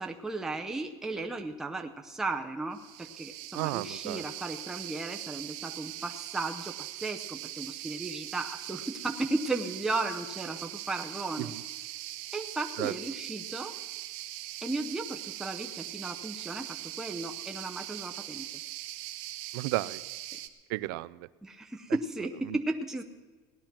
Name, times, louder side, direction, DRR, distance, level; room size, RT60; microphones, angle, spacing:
voice 1, 0.0-11.6 12.3-13.7 14.6-18.5 21.4-23.0, right 2 dB, 5° right, 3 dB, 0.6 m, -35 dB
sound 1, 2.7-20.5, right 16 dB, 70° right, 1.0 m, -41 dB
voice 2, 3.5-4.2 11.4-11.5 12.8-12.9 19.5-20.0 20.7-21.3 22.5-22.6, right 19 dB, 85° right, 18 dB, 0.5 m, -33 dB
17.5 x 10.5 x 5.9 m, 1.3 s
cardioid pair, 160°, 11 cm